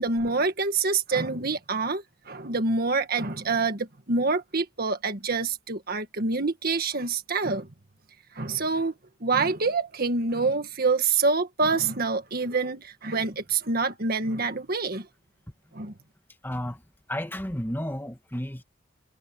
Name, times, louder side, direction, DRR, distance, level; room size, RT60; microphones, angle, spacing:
voice 1, 0.0-7.7 8.3-8.9 9.2-15.1 15.7-15.9, right 4 dB, 50° right, 1.7 m, -26 dB
voice 2, 16.4-18.6, left 1 dB, 10° left, 2.1 m, -32 dB
head